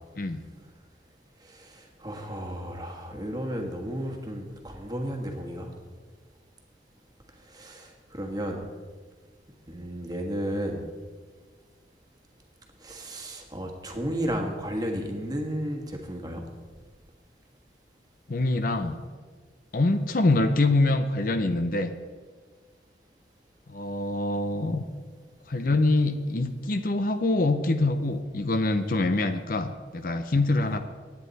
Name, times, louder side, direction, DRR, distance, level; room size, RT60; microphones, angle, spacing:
voice 1, 1.4-5.7 7.4-8.6 9.7-10.8 12.8-16.4 30.6-30.8, equal, 20° right, 2 dB, 1.6 m, -33 dB
voice 2, 18.3-19.0 19.7-21.9 23.7-24.8 25.5-30.8, left 2 dB, 50° left, 9 dB, 0.7 m, -25 dB
16.0 x 9.6 x 4.1 m, 1.5 s
head